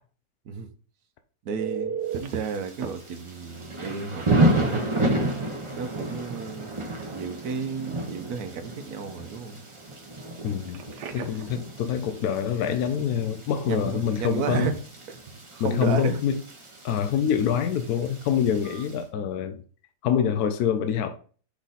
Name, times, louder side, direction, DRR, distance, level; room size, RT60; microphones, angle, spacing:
voice 1, 1.4-4.9 5.7-6.7 7.1-9.6 13.6-14.8 15.1-15.2 15.5-16.2, right 5 dB, 70° right, 1.2 m, -32 dB
Telephone, 1.6-2.3 2.8-2.9 4.7-4.8 5.2-5.4 10.7-11.5 18.6-18.8, right 7 dB, 85° right, 1.4 m, -34 dB
Thunder / Rain, 2.1-19.0, right 1 dB, 25° right, 0.7 m, -31 dB
voice 2, 10.4-10.8 11.1-14.7 15.6-16.4 16.8-19.6 20.0-21.2, left 8 dB, 75° left, 1.1 m, -25 dB
6.0 x 3.8 x 4.1 m
omnidirectional pair, 1.8 m